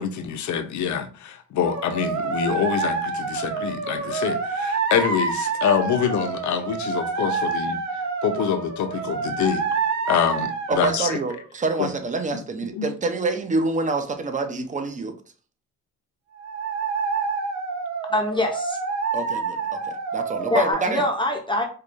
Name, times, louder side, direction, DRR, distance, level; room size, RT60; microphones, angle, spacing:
voice 1, 0.0-7.8 8.2-9.6 10.1-11.2 11.8-11.9 12.7-12.9, left 8 dB, 70° left, 0.7 m, -25 dB
sound 1, 1.6-11.5 16.4-20.7, right 4 dB, 70° right, 0.8 m, -28 dB
voice 2, 10.7-15.1 19.1-21.1, right 2 dB, 25° right, 0.7 m, -26 dB
voice 3, 18.1-18.8 20.5-21.6, left 1 dB, 15° left, 0.6 m, -24 dB
4.7 x 2.3 x 2.6 m
cardioid pair, 90°, 30 cm